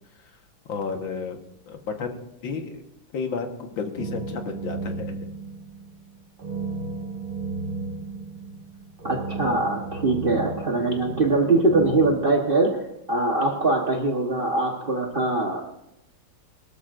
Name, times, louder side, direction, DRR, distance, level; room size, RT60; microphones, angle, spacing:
voice 1, 0.7-1.4 1.7-2.9 3.1-5.3, left 5 dB, 85° left, 4 dB, 2.2 m, -32 dB
sound 1, 4.0-12.2, right 3 dB, 60° right, 2.5 m, -34 dB
voice 2, 9.0-15.6, right 2 dB, 35° right, 1 dB, 1.3 m, -22 dB
22.0 x 13.0 x 2.6 m, 0.86 s
omnidirectional pair, 2.1 m